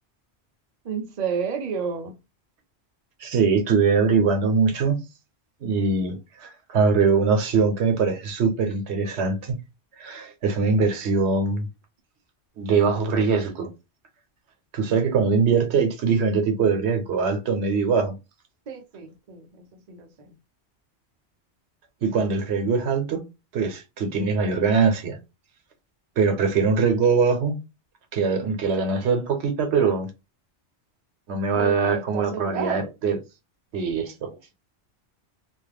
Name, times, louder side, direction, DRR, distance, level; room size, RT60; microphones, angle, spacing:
voice 1, 0.9-2.1 18.7-19.4 19.9-20.1 31.6-32.9, right 6 dB, 50° right, 0.6 m, -30 dB
voice 2, 3.2-5.0 5.6-9.6 10.0-11.7 12.6-13.7 14.7-18.1 22.0-23.2 23.5-25.2 26.2-27.6 28.1-30.1 31.3-33.2 33.7-34.3, right 5 dB, 85° right, 1.0 m, -22 dB
2.4 x 2.3 x 3.2 m
omnidirectional pair, 1.1 m